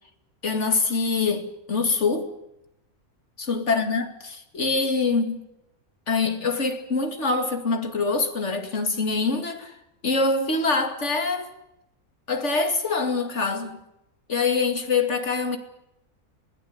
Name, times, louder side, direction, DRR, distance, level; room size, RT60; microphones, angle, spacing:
voice 1, 0.4-2.3 3.4-5.4 6.1-9.8 10.0-11.5 12.3-13.8 14.3-15.6, left 4 dB, 55° left, 2.7 m, -24 dB
22.5 x 15.5 x 9.5 m
omnidirectional pair, 1.5 m